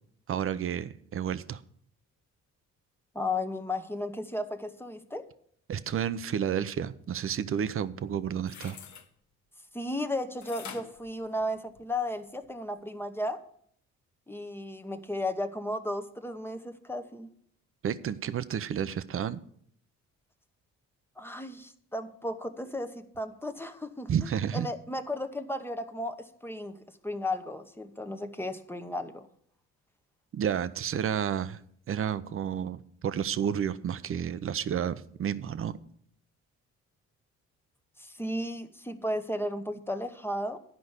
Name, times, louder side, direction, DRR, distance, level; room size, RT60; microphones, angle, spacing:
voice 1, 0.3-1.6 5.7-8.8 17.8-19.4 24.1-24.7 30.3-31.6 31.9-35.8, right 8 dB, 45° right, 14 dB, 0.7 m, -31 dB
voice 2, 3.1-5.2 9.7-13.4 14.3-17.3 21.2-24.1 24.5-26.8 27.0-29.3 38.0-40.6, left 1 dB, 5° left, 8 dB, 1.0 m, -34 dB
sound 1, 8.4-9.1 10.4-12.0 12.4-12.5, left 7 dB, 70° left, 1.3 m, -46 dB
11.5 x 5.2 x 8.0 m, 0.65 s
cardioid pair, 90°, 30 cm